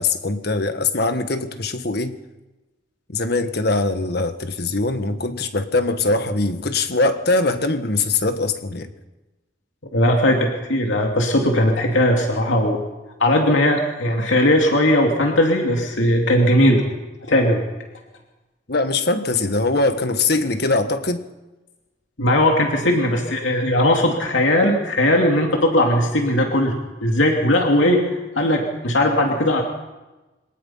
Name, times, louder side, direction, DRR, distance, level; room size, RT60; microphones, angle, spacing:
voice 1, 0.0-2.1 3.1-8.9 18.7-21.2, left 3 dB, 55° left, 9 dB, 1.5 m, -22 dB
voice 2, 9.9-12.8 13.2-16.8 17.2-17.6 22.2-29.6, left 1 dB, 85° left, 1 dB, 2.7 m, -18 dB
25.0 x 18.5 x 5.7 m, 1.1 s
head